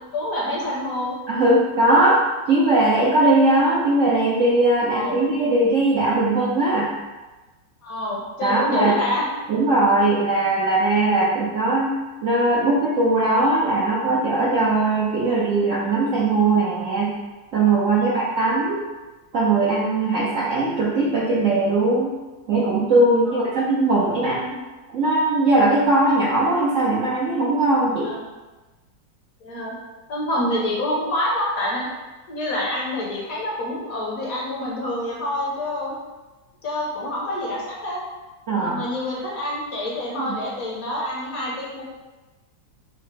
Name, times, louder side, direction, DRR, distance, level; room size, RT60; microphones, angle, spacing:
voice 1, 0.1-1.2 4.9-5.2 7.8-9.2 18.0-18.1 23.2-23.6 28.0-28.2 29.4-29.7 30.1-31.9 32.3-35.9 36.6-38.0 38.5-41.8, left 1 dB, 60° left, -4 dB, 1.1 m, -27 dB
voice 2, 1.3-2.2 2.5-6.9 8.4-8.9 9.5-12.0 12.2-17.1 17.5-18.8 19.3-22.1 22.5-24.6 24.9-28.1 38.5-38.8 40.1-40.4, right 2 dB, 70° right, -6 dB, 0.7 m, -19 dB
4.6 x 2.0 x 4.3 m, 1.2 s
omnidirectional pair, 2.0 m